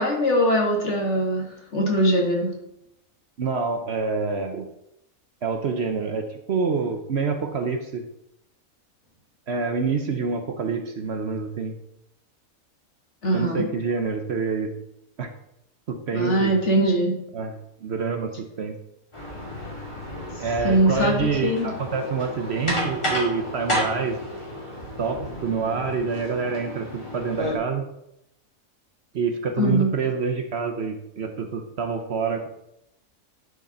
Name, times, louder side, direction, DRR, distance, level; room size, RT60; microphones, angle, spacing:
voice 1, 0.0-2.5 13.2-13.7 16.1-17.1 20.6-21.7 29.6-29.9, right 1 dB, 55° left, 0 dB, 2.1 m, -22 dB
voice 2, 3.4-4.7 5.4-8.0 9.5-11.8 13.3-14.8 15.2-15.3 15.9-16.6 17.3-18.8 20.4-24.2 25.0-27.8 29.1-32.5, right 5 dB, 55° right, 6 dB, 0.9 m, -27 dB
sound 1, 19.1-27.5, equal, 20° left, 2.5 m, -31 dB
10.5 x 5.1 x 4.2 m, 0.81 s
omnidirectional pair, 1.5 m